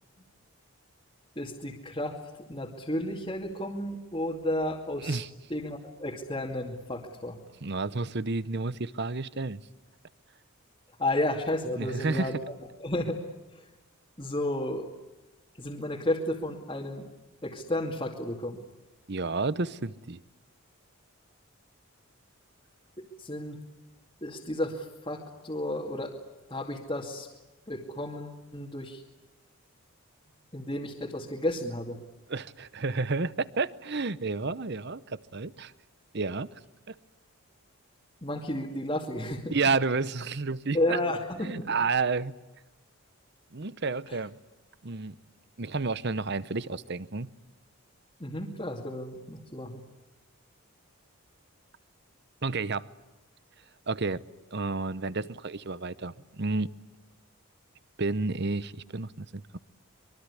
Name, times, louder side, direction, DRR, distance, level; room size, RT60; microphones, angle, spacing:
voice 1, 1.4-5.2 5.5-7.4 11.0-12.4 12.8-13.2 13.5-13.7 14.2-14.9 15.6-17.1 17.4-18.6 23.0-23.6 24.2-26.1 26.5-27.3 27.7-29.0 30.5-32.0 38.2-39.5 40.7-41.7 44.1-44.2 48.2-49.8, left 1 dB, 20° left, 2.5 m, -32 dB
voice 2, 7.6-9.6 11.8-12.3 19.1-20.2 32.3-35.7 36.1-36.5 36.9-37.0 39.5-41.0 41.4-42.3 43.5-44.4 44.8-45.2 45.6-47.3 52.4-52.9 53.9-54.2 54.5-56.7 58.0-59.6, right 3 dB, 50° right, 0.8 m, -30 dB
25.0 x 23.5 x 9.9 m
head